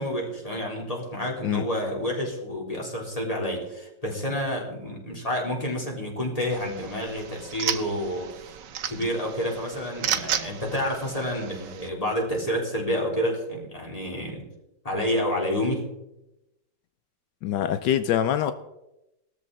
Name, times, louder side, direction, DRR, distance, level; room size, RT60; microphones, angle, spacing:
voice 1, 0.0-8.5 8.9-14.4 14.8-15.9, equal, 20° left, -2 dB, 3.8 m, -29 dB
sound 1, 6.5-11.9, right 9 dB, 85° right, 1.6 m, -33 dB
voice 2, 17.4-18.5, left 10 dB, 80° left, 11 dB, 1.3 m, -24 dB
18.5 x 13.5 x 4.1 m, 0.93 s
omnidirectional pair, 1.9 m